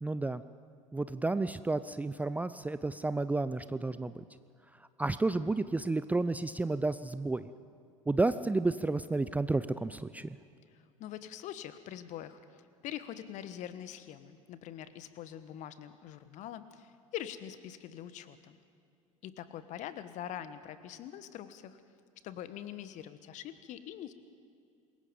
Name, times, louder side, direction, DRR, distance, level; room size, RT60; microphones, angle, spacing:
voice 1, 0.0-0.4 0.9-4.2 5.0-7.5 8.1-10.4, right 3 dB, 10° right, 14 dB, 0.5 m, -31 dB
voice 2, 10.7-18.6 19.2-21.8 22.2-24.1, left 11 dB, 45° left, 12 dB, 1.4 m, -44 dB
27.0 x 21.5 x 5.3 m, 2.5 s
figure-of-eight pair, 70°, 17 cm